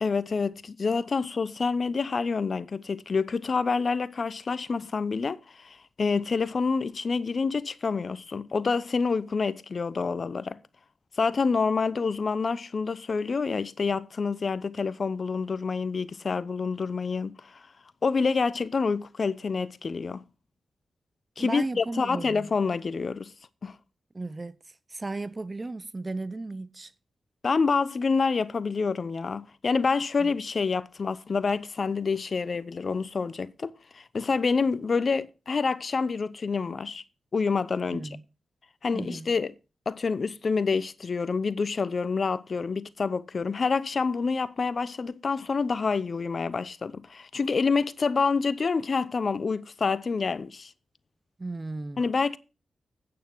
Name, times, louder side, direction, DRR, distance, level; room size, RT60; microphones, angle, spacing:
voice 1, 0.0-10.6 11.2-17.6 18.0-20.2 21.4-23.3 23.6-23.7 27.4-37.0 37.3-38.0 38.8-39.5 39.9-50.7 52.0-52.4, left 4 dB, 55° left, 0.8 m, -27 dB
voice 2, 21.4-22.5 24.1-26.9 30.2-30.3 37.9-38.2 38.9-39.3 51.4-52.1, right 2 dB, 35° right, 0.6 m, -35 dB
9.0 x 6.7 x 6.1 m
supercardioid pair, 45°, 0 cm